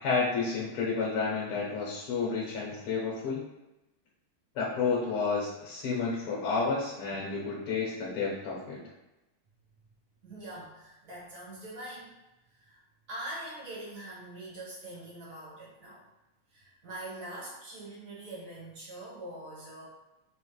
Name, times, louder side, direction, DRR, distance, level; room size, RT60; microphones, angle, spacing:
voice 1, 0.0-3.5 4.6-8.8, left 4 dB, 85° left, -4 dB, 2.1 m, -31 dB
voice 2, 10.2-12.1 12.6-12.8 13.1-16.0 16.5-19.9, right 1 dB, 50° right, -5 dB, 1.7 m, -43 dB
4.3 x 3.1 x 3.1 m, 0.99 s
omnidirectional pair, 2.4 m